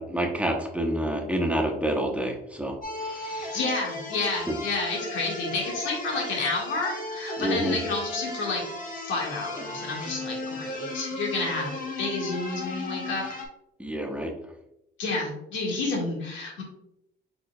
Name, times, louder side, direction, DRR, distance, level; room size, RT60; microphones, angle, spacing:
voice 1, 0.0-3.6 7.4-7.8 13.8-14.3, right 1 dB, 5° right, 1 dB, 0.8 m, -28 dB
sound 1, 2.8-13.5, left 2 dB, 45° left, 1.2 m, -35 dB
voice 2, 3.2-8.6 8.9-11.7 12.0-13.3 15.0-16.6, left 3 dB, 80° left, -2 dB, 1.7 m, -30 dB
4.9 x 4.2 x 2.2 m, 0.82 s
cardioid pair, 95°, 19 cm